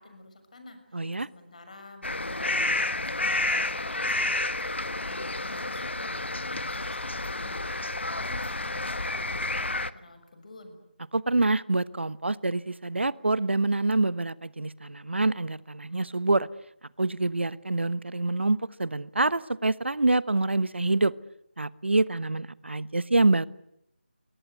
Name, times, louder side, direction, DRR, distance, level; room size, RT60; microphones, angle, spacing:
voice 1, 0.0-10.8, left 2 dB, 40° left, 6.5 m, -50 dB
voice 2, 0.9-1.3 11.1-16.5 17.0-21.1 21.6-23.5, right 2 dB, 85° right, 1.1 m, -26 dB
sound 1, 2.0-9.9, left 2 dB, 90° left, 1.4 m, -30 dB
28.5 x 23.0 x 8.1 m
figure-of-eight pair, 170°, 6 cm